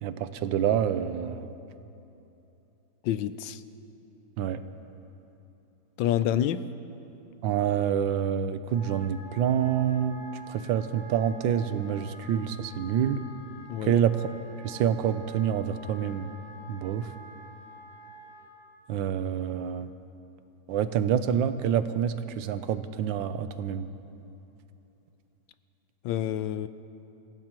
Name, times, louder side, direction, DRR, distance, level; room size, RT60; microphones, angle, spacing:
voice 1, 0.0-1.5 4.4-4.6 7.4-13.2 13.8-14.2 14.6-16.3 16.7-17.1 18.9-19.9 20.7-23.9, right 9 dB, 85° right, 11 dB, 1.4 m, -27 dB
voice 2, 3.0-3.6 6.0-6.7 13.7-13.9 26.0-26.7, left 11 dB, 80° left, 13 dB, 1.3 m, -28 dB
Wind instrument woodwind instrument, 8.6-18.5, right 1 dB, 25° right, 4.0 m, -48 dB
27.0 x 16.0 x 3.0 m, 2.9 s
omnidirectional pair, 2.0 m